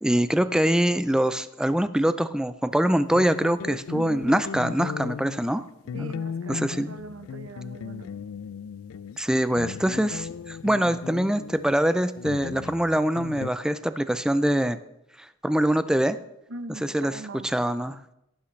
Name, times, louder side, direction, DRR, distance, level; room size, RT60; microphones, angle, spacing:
voice 1, 0.0-5.7 5.9-6.1 6.5-6.9 9.2-14.8 15.2-16.2 16.8-18.0, right 1 dB, 5° right, 12 dB, 0.4 m, -24 dB
sound 1, 3.1-13.5, left 7 dB, 80° left, 0.3 m, -37 dB
voice 2, 3.9-4.3 5.9-8.1 16.5-17.5, right 2 dB, 75° right, 10 dB, 0.9 m, -40 dB
17.0 x 8.3 x 3.2 m, 0.83 s
head